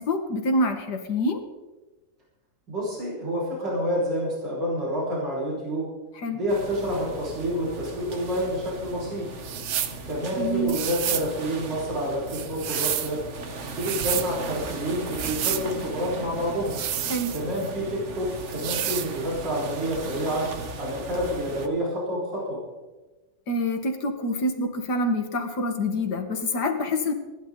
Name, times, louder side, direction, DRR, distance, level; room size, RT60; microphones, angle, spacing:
voice 1, 0.0-1.4 6.2-6.4 10.3-10.8 17.1-17.3 23.5-27.1, left 1 dB, 60° left, 6 dB, 2.2 m, -26 dB
voice 2, 2.7-5.8 6.3-9.3 10.0-13.2 13.7-16.8 17.3-20.4 20.8-22.6, equal, 70° right, -6 dB, 6.2 m, -28 dB
sound 1, 6.5-21.7, right 2 dB, 40° right, 1.4 m, -38 dB
sound 2, 9.4-10.0 10.7-11.3 12.3-13.1 13.7-14.3 15.1-15.7 16.7-17.7 18.5-19.1, right 10 dB, 90° right, 1.7 m, -29 dB
27.0 x 11.0 x 3.9 m, 1.2 s
omnidirectional pair, 2.0 m